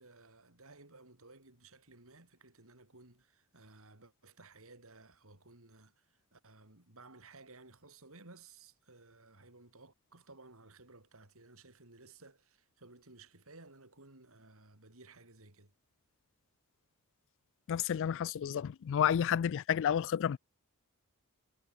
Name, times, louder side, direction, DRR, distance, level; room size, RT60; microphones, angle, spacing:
voice 1, 0.0-15.7, right 3 dB, 65° right, 3.9 m, -57 dB
voice 2, 17.7-20.4, left 9 dB, 60° left, 0.3 m, -30 dB
head